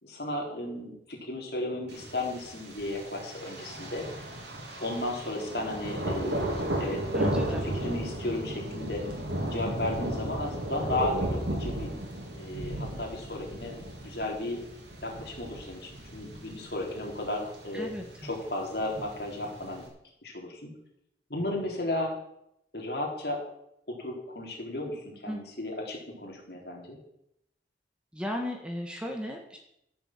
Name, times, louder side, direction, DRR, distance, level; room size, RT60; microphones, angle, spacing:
voice 1, 0.0-4.0 4.8-7.3 7.8-9.0 9.5-11.9 12.3-14.6 15.0-17.9 18.3-19.8 20.2-20.7 21.3-22.1 22.7-23.4 23.9-27.0, left 1 dB, 65° left, -1 dB, 4.0 m, -34 dB
Thunder, 1.9-19.9, right 1 dB, 80° right, 3.1 m, -35 dB
voice 2, 7.1-7.6 17.7-18.3 25.3-25.4 28.1-29.6, equal, 5° right, 2 dB, 1.6 m, -35 dB
14.0 x 7.1 x 7.6 m, 0.78 s
head